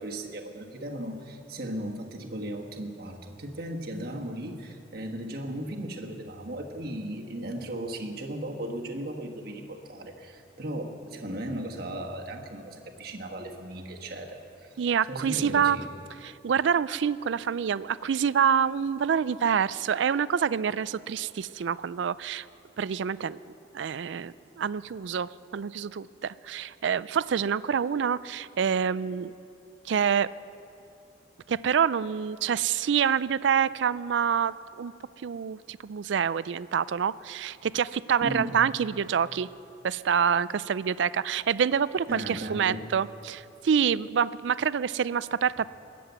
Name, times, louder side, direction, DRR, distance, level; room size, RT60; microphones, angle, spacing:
voice 1, 0.0-14.7 15.1-15.9 38.2-38.6 42.1-42.9, right 1 dB, 55° right, 1 dB, 1.5 m, -36 dB
voice 2, 14.8-15.8 16.2-22.5 22.8-23.4 23.7-29.3 29.9-30.3 31.5-34.9 35.2-39.5 39.8-45.7, right 7 dB, 70° right, 18 dB, 0.4 m, -27 dB
21.0 x 7.7 x 8.1 m, 2.8 s
head